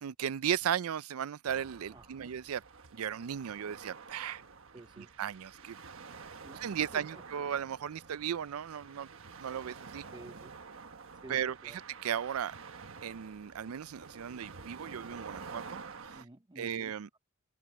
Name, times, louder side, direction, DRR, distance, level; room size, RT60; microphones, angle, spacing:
voice 1, 0.0-2.6 2.9-4.4 5.0-5.8 6.5-9.1 9.4-10.0 11.3-12.5 13.0-16.2 16.6-17.1, right 9 dB, 80° right, 0.4 m, -36 dB
sound 1, 1.5-16.2, right 5 dB, 65° right, 1.3 m, -49 dB
voice 2, 1.9-2.3 4.7-5.1 6.4-6.6 6.9-7.2 10.1-10.5 11.2-11.8 16.1-17.2, right 2 dB, 20° right, 0.8 m, -51 dB
open air
head